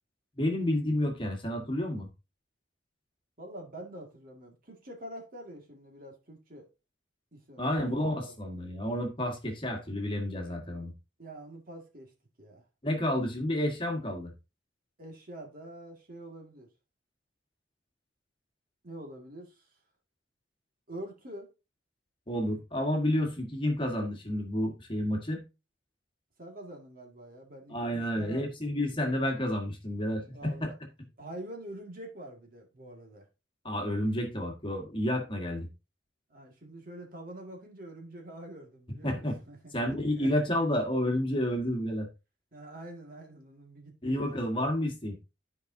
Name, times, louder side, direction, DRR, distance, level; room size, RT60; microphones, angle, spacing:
voice 1, 0.4-2.1 7.6-10.9 12.8-14.3 22.3-25.4 27.7-30.7 33.6-35.7 39.0-39.4 39.7-42.1 44.0-45.2, left 1 dB, 25° left, 1.6 m, -30 dB
voice 2, 3.4-6.7 7.3-7.9 8.2-8.3 11.2-12.1 12.4-12.6 15.0-16.7 18.8-19.6 20.9-21.5 26.4-28.5 30.3-30.8 31.2-33.3 36.3-39.7 40.2-40.3 42.5-44.5, right 1 dB, 45° right, 2.0 m, -45 dB
14.0 x 4.8 x 2.7 m
head